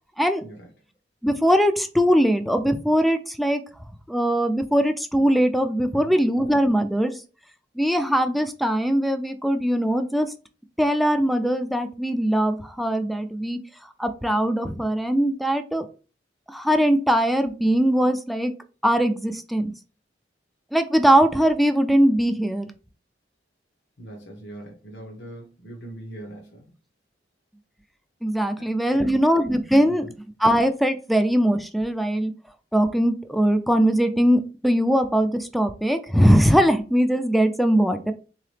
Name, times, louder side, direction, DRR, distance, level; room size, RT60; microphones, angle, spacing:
voice 1, 1.2-3.6 4.1-7.1 7.8-10.3 10.8-13.6 14.0-15.8 16.5-18.5 18.8-19.7 20.7-22.7 28.2-30.1 30.4-32.3 32.7-38.1, equal, ahead, 9 dB, 0.3 m, -21 dB
voice 2, 24.0-26.7 28.6-29.1 30.0-30.1, right 1 dB, 85° left, 0 dB, 0.9 m, -41 dB
3.9 x 2.8 x 3.2 m, 0.35 s
head